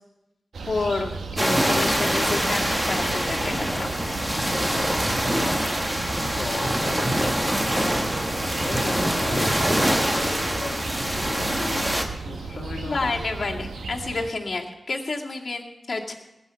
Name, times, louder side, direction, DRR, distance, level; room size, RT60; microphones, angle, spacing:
sound 1, 0.5-14.3, right 4 dB, 90° right, 1.2 m, -35 dB
voice 1, 0.7-4.0 12.9-16.1, left 3 dB, 50° left, -2 dB, 2.2 m, -29 dB
sound 2, 1.4-12.0, equal, 15° right, 1.5 m, -24 dB
voice 2, 5.1-5.5 6.4-7.4 8.6-11.8 12.2-13.3, left 4 dB, 75° left, -1 dB, 1.5 m, -37 dB
19.0 x 8.4 x 5.8 m, 0.96 s
wide cardioid pair, 100°, 0 cm